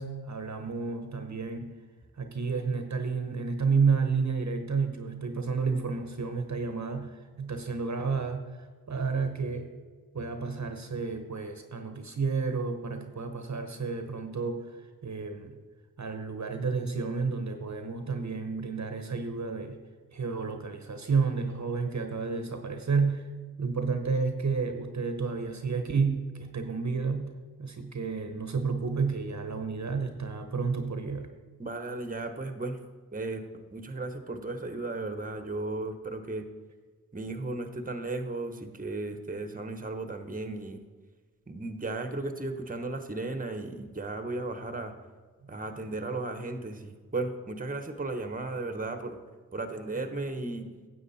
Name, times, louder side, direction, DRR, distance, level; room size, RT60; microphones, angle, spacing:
voice 1, 0.0-1.7 2.2-9.7 10.1-15.6 16.0-19.8 20.1-23.3 23.6-31.3 45.4-45.5, right 5 dB, 50° right, 6 dB, 1.0 m, -31 dB
voice 2, 31.6-32.8 33.1-33.4 33.7-36.5 37.1-40.8 41.5-44.9 45.5-49.2 49.5-50.7, right 2 dB, 25° right, 8 dB, 1.1 m, -35 dB
10.0 x 7.3 x 4.2 m, 1.4 s
cardioid pair, 40°, 36 cm